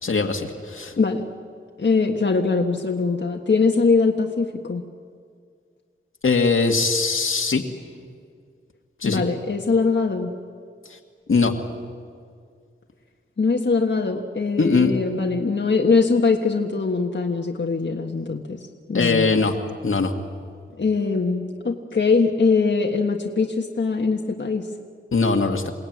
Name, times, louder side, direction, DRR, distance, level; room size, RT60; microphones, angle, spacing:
voice 1, 0.0-0.9 6.2-7.6 9.0-9.2 11.3-11.5 14.6-14.9 18.9-19.6 19.8-20.1 25.1-25.7, left 4 dB, 80° left, 3 dB, 2.0 m, -20 dB
voice 2, 1.8-4.8 9.0-10.3 13.4-19.3 20.8-24.7, left 4 dB, 60° left, 1 dB, 1.6 m, -22 dB
28.5 x 18.0 x 9.5 m, 2.1 s
wide cardioid pair, 80°, 21 cm